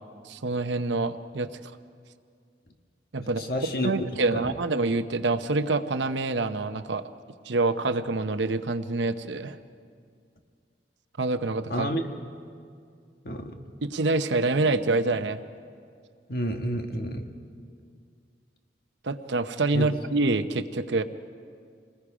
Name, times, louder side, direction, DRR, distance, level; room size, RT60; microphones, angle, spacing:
voice 1, 0.2-1.5 3.1-7.0 7.4-9.6 11.2-11.9 13.8-15.4 19.0-21.0, right 3 dB, 85° right, 10 dB, 0.8 m, -26 dB
voice 2, 3.2-3.9 4.4-4.5 11.7-12.0 13.2-13.5 16.3-17.3 19.7-19.9, equal, 55° left, 4 dB, 1.5 m, -30 dB
28.0 x 20.0 x 5.0 m, 2.2 s
head